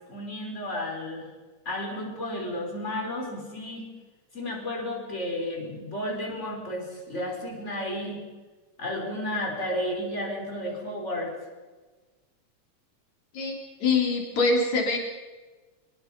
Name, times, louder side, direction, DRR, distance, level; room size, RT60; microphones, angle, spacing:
voice 1, 0.1-1.3 1.7-3.8 4.3-8.2 8.8-11.3, left 1 dB, 20° left, 0 dB, 5.5 m, -32 dB
voice 2, 13.8-15.0, left 3 dB, 65° left, 0 dB, 5.0 m, -24 dB
25.5 x 23.0 x 5.5 m, 1.3 s
omnidirectional pair, 3.5 m